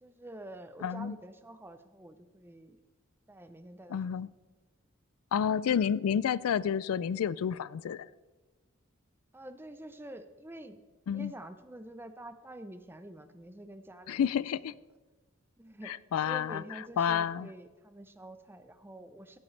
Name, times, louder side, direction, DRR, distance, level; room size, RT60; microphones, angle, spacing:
voice 1, 0.0-2.8 3.3-4.0 9.3-14.4 15.6-15.9 16.2-19.4, right 1 dB, 10° right, 10 dB, 0.6 m, -47 dB
voice 2, 0.8-1.2 3.9-4.3 5.3-8.1 11.1-11.3 14.1-14.8 15.8-16.6 17.0-17.5, left 8 dB, 80° left, 19 dB, 0.3 m, -30 dB
15.5 x 9.9 x 3.2 m, 1.2 s
head